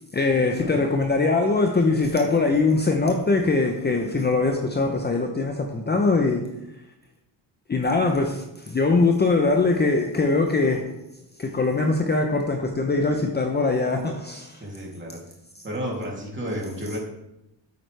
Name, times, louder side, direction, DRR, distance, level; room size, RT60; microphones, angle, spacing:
voice 1, 0.1-6.4 7.7-10.8 11.4-14.6, left 3 dB, 25° left, 3 dB, 0.8 m, -22 dB
voice 2, 14.6-15.2 15.6-17.0, equal, 25° right, -3 dB, 2.9 m, -32 dB
8.7 x 7.9 x 3.4 m, 0.88 s
cardioid pair, 105°, 43 cm